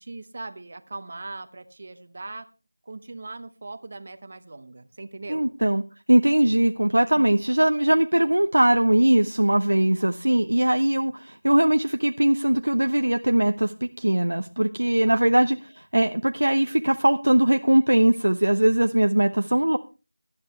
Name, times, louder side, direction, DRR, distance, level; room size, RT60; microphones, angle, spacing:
voice 1, 0.0-2.5 2.9-5.5 7.2-7.4 10.3-10.4 19.5-19.6, right 3 dB, 30° right, 12 dB, 1.0 m, -39 dB
voice 2, 5.3-5.8 6.1-19.8, right 1 dB, 80° right, 7 dB, 0.8 m, -20 dB
18.5 x 11.5 x 3.2 m, 0.32 s
figure-of-eight pair, 175°, 0 cm